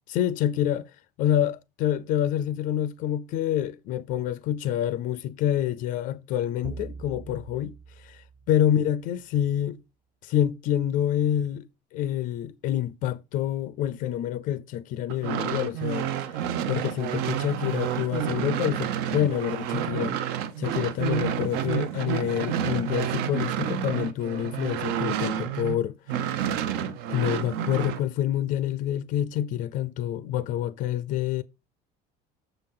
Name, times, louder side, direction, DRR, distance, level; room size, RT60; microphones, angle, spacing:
voice 1, 0.1-0.9 1.2-9.8 10.2-20.2 20.6-26.5 26.8-31.4, left 11 dB, 50° left, 0.4 m, -27 dB
sound 1, 6.6-9.1, right 4 dB, 15° right, 0.5 m, -43 dB
sound 2, 15.1-25.8 26.1-28.0, right 9 dB, 70° right, 0.8 m, -29 dB
6.8 x 5.9 x 3.7 m
cardioid pair, 180°, 17 cm